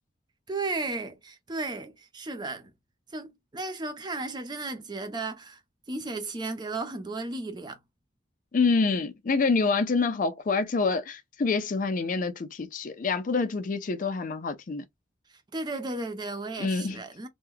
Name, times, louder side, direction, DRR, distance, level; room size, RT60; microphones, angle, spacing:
voice 1, 0.5-2.7 3.1-5.6 5.9-7.8 15.5-17.3, right 3 dB, 20° right, 0.5 m, -34 dB
voice 2, 8.5-14.8 16.6-17.0, left 4 dB, 40° left, 0.4 m, -26 dB
3.0 x 2.1 x 3.5 m
head